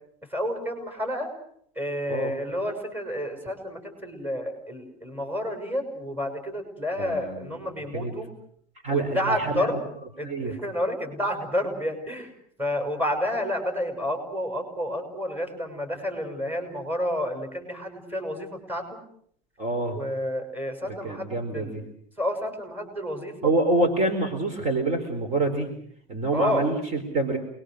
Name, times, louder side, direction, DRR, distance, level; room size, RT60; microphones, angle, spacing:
voice 1, 0.3-1.3 1.8-8.3 8.9-9.9 10.2-12.3 12.6-19.0 19.9-21.8 22.2-23.5 26.3-26.6, equal, 10° right, 5 dB, 6.2 m, -30 dB
voice 2, 7.0-7.6 7.9-8.1 8.8-9.8 10.2-10.5 19.6-20.0 21.0-21.8 23.4-25.7 26.1-27.4, right 2 dB, 35° right, 6 dB, 4.1 m, -26 dB
28.5 x 21.5 x 6.5 m, 0.65 s
supercardioid pair, 150°, 20 cm